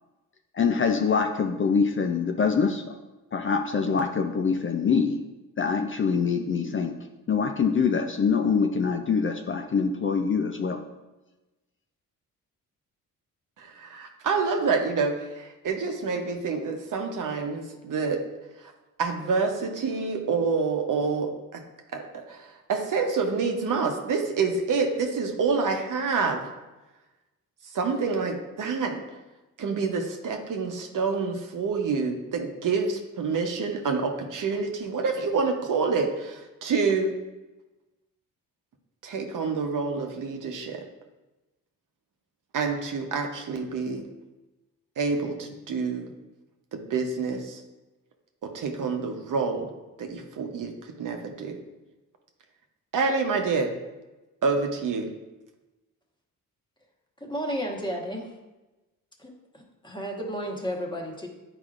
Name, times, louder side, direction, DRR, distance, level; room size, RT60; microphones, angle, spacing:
voice 1, 0.5-3.0 3.3-5.2 5.6-7.0 7.3-10.8, left 5 dB, 35° left, 4 dB, 0.5 m, -24 dB
voice 2, 13.6-18.2 18.6-18.7 19.0-21.6 21.9-26.5 27.7-29.0 29.6-37.2 39.0-40.8 42.5-44.0 45.0-46.1 46.7-47.6 48.4-49.7 50.0-51.6 52.9-53.7 54.4-55.1, right 4 dB, 60° right, 3 dB, 0.9 m, -27 dB
voice 3, 57.2-58.3 59.2-61.3, equal, 15° left, 0 dB, 1.3 m, -33 dB
9.0 x 4.8 x 2.5 m, 1.1 s
cardioid pair, 80°, 35 cm